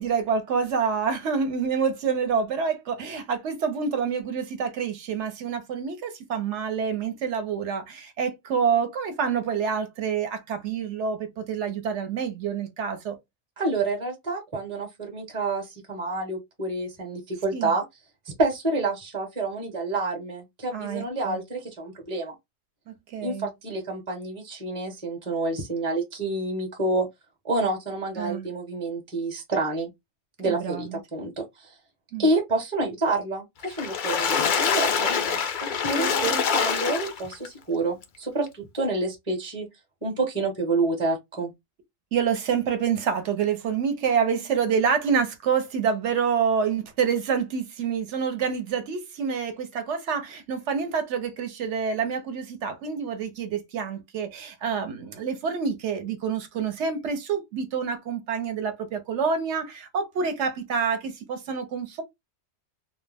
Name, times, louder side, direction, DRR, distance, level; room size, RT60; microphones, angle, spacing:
voice 1, 0.0-13.2 17.5-17.7 20.7-21.4 23.1-23.5 28.2-28.5 30.4-31.0 32.1-32.2 36.0-36.4 42.1-62.0, right 6 dB, 65° right, 0.9 m, -27 dB
voice 2, 13.6-17.8 18.4-22.3 23.2-27.1 27.4-29.9 30.4-31.7 32.2-39.7 40.0-41.5, right 2 dB, 30° right, 0.8 m, -28 dB
Water / Splash splatter, 33.6-37.5 38.0-38.1 38.5-38.6, left 6 dB, 70° left, 0.4 m, -25 dB
2.3 x 2.1 x 3.2 m
omnidirectional pair, 1.4 m